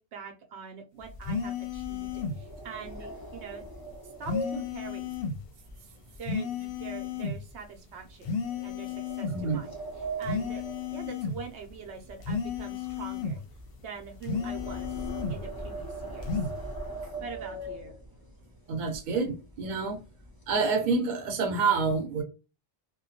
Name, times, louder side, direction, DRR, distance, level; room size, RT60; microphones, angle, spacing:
voice 1, 0.0-3.6 4.2-5.2 6.2-8.4 8.6-9.7 10.2-10.6 10.9-13.4 13.8-16.5 17.2-18.0, right 6 dB, 80° right, 0.9 m, -44 dB
sound 1, 1.0-6.4 6.7-7.0 7.5-7.6 8.4-11.8 12.0-18.3 18.9-19.0 19.3-19.5 19.9-20.5, right 1 dB, 30° left, 0.4 m, -40 dB
sound 2, 1.2-2.4 4.3-5.4 6.3-7.4 8.2-9.4 10.2-11.4 12.2-13.4 14.2-15.4 16.2-16.6, left 5 dB, 65° left, 0.7 m, -33 dB
voice 2, 9.3-9.6 18.7-20.0 20.5-22.2, right 4 dB, 50° right, 0.7 m, -27 dB
2.2 x 2.2 x 2.7 m
omnidirectional pair, 1.1 m